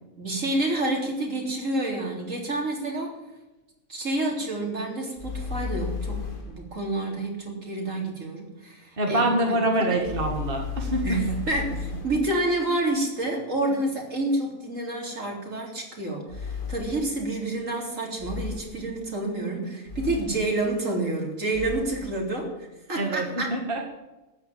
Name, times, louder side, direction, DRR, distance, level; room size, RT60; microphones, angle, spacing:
voice 1, 0.2-3.1 3.9-10.1 11.0-23.6, right 2 dB, 70° right, 0 dB, 4.1 m, -29 dB
sound 1, 5.2-6.7 10.0-12.3 16.3-17.2 18.2-18.9 19.9-20.5 21.5-22.1, left 5 dB, 40° left, 1.8 m, -34 dB
voice 2, 9.0-11.0 11.3-11.4 23.0-23.8, right 1 dB, 40° right, 1 dB, 2.1 m, -25 dB
14.0 x 10.5 x 8.8 m, 1.1 s
omnidirectional pair, 1.4 m